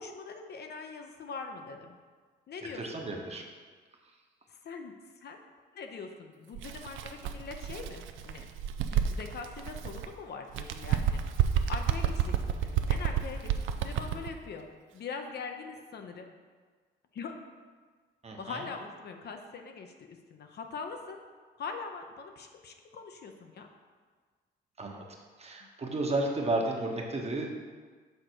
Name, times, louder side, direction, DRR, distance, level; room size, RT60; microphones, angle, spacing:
voice 1, 0.0-2.0 2.5-3.4 4.5-4.9 5.2-5.4 5.7-8.5 8.9-11.2 11.7-14.7 14.9-16.3 17.1-17.4 18.4-21.2 21.6-23.7 25.6-25.7, left 5 dB, 55° left, 4 dB, 0.7 m, -42 dB
voice 2, 2.7-3.4 18.2-18.6 24.8-25.0 25.4-27.5, right 2 dB, 30° right, 0 dB, 1.0 m, -32 dB
Bird, 6.5-10.1 10.5-14.3, right 9 dB, 80° right, 0.4 m, -30 dB
6.6 x 3.8 x 4.5 m, 1.5 s
cardioid pair, 90°, 20 cm